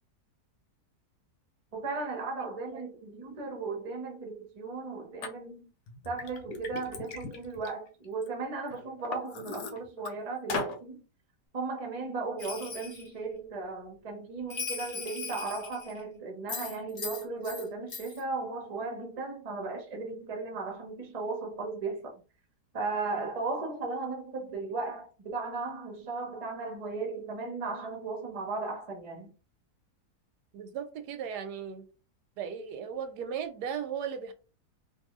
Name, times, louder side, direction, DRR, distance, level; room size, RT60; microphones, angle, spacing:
voice 1, 1.7-5.7 6.0-11.0 11.5-22.2 22.7-29.3, right 3 dB, 35° right, 0.6 m, -36 dB
voice 2, 2.7-3.0 30.5-31.9 32.4-34.3, right 7 dB, 85° right, 1.2 m, -37 dB
Liquid, 5.2-5.3 5.9-8.3 8.7-10.1 10.5-10.8, left 4 dB, 75° left, 1.2 m, -38 dB
Bell, 12.4-13.1 14.5-16.0 16.5-17.6 17.9-18.2, left 5 dB, 50° left, 0.5 m, -39 dB
2.6 x 2.5 x 3.0 m
omnidirectional pair, 1.7 m